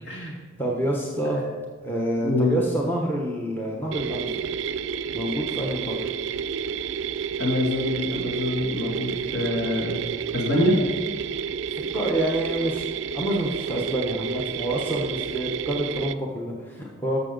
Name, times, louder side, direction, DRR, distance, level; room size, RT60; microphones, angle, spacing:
voice 1, 0.0-1.4 1.8-4.4 5.1-6.0 11.9-12.9 13.1-17.2, right 1 dB, 10° left, -2 dB, 0.9 m, -27 dB
voice 2, 2.2-2.6 7.4-10.0 10.3-10.8, left 1 dB, 60° left, -3 dB, 2.5 m, -25 dB
sound 1, 3.9-16.1, right 7 dB, 65° right, 0.3 m, -30 dB
12.0 x 6.9 x 3.9 m, 1.4 s
head